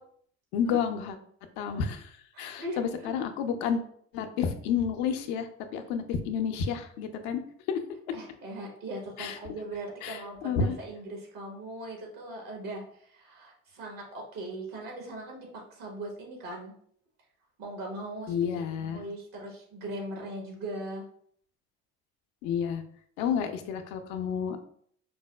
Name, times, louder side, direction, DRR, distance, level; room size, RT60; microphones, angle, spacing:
voice 1, 0.5-1.1 1.6-3.8 4.1-7.4 7.7-7.8 9.2-9.4 10.0-10.8 18.3-19.0 22.4-22.8 23.2-24.6, left 7 dB, 80° left, 7 dB, 0.5 m, -30 dB
voice 2, 2.3-3.2 8.1-16.7 17.6-21.0, right 1 dB, 70° right, 1 dB, 1.2 m, -40 dB
4.5 x 2.0 x 2.2 m, 0.62 s
hypercardioid pair, 60°, 34 cm